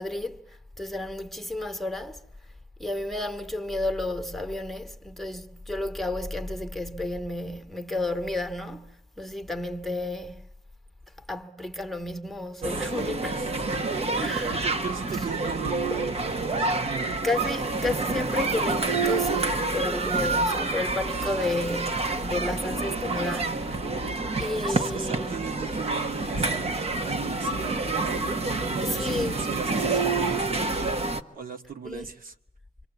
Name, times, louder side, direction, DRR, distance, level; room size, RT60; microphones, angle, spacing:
voice 1, 0.0-2.2 2.8-10.4 11.3-13.4 14.2-14.6 15.9-16.0 17.2-23.9 24.4-25.4 28.8-29.4 31.8-32.1, left 2 dB, ahead, 1.6 m, -32 dB
sound 1, 12.6-31.2, right 3 dB, 40° right, 1.4 m, -28 dB
voice 2, 13.3-17.2 24.6-31.1 31.3-32.3, right 6 dB, 65° right, 1.8 m, -38 dB
26.5 x 26.0 x 8.2 m
wide cardioid pair, 115°, 16 cm